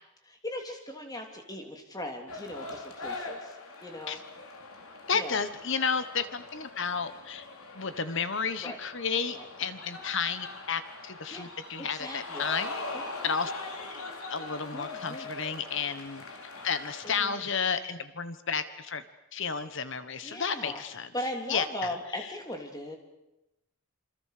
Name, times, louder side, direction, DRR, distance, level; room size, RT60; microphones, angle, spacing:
voice 1, 0.2-3.5 3.8-4.2 5.1-5.4 8.6-8.8 9.3-9.5 11.3-11.5 11.8-12.4 12.9-13.1 14.7-15.3 17.0-17.4 20.2-20.8 21.1-23.0, left 1 dB, 15° left, 3 dB, 3.2 m, -38 dB
sound 1, 2.3-17.2, left 2 dB, 75° left, 3.9 m, -42 dB
voice 2, 5.1-7.5 7.7-12.7 13.2-13.5 14.3-16.2 16.6-19.0 19.3-21.1 21.5-22.3, left 6 dB, 55° left, 12 dB, 1.4 m, -32 dB
27.5 x 25.5 x 6.8 m, 0.92 s
head